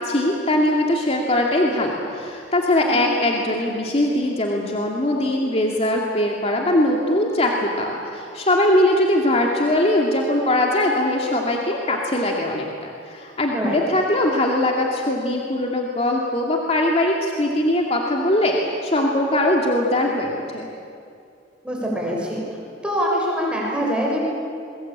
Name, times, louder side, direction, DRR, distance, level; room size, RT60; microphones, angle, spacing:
voice 1, 0.0-20.7, left 1 dB, 35° left, 0 dB, 2.5 m, -21 dB
voice 2, 21.6-22.4 22.8-24.2, equal, 5° right, -3 dB, 6.7 m, -24 dB
29.0 x 22.5 x 8.9 m, 2.4 s
head